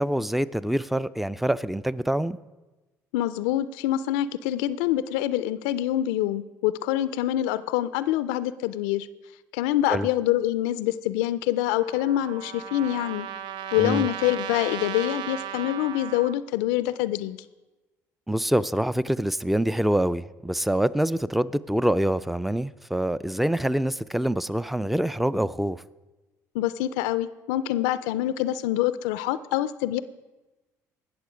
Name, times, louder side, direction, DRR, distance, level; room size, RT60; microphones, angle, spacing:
voice 1, 0.0-2.4 9.9-10.1 13.8-14.1 18.3-25.8, right 1 dB, ahead, 18 dB, 0.4 m, -25 dB
voice 2, 3.1-9.1 9.5-13.3 13.7-17.4 26.5-30.0, left 13 dB, 85° left, 15 dB, 0.4 m, -25 dB
Trumpet, 11.7-16.4, right 9 dB, 70° right, 0.5 m, -36 dB
18.5 x 6.7 x 5.0 m, 1.1 s
hypercardioid pair, 65°, 8 cm